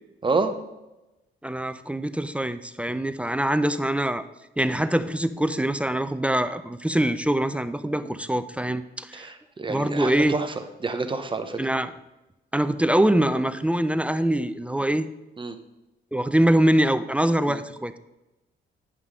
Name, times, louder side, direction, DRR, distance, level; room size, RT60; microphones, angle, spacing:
voice 1, 0.2-0.5 8.0-8.1 9.1-10.5 10.8-11.6 15.4-15.6 17.5-17.6, right 3 dB, 25° right, 7 dB, 0.7 m, -28 dB
voice 2, 1.4-4.2 4.6-9.3 9.7-10.3 11.6-11.9 12.5-15.1 16.1-17.9, right 1 dB, 5° right, 11 dB, 0.4 m, -24 dB
9.5 x 5.5 x 3.6 m, 0.99 s
cardioid pair, 90°, 20 cm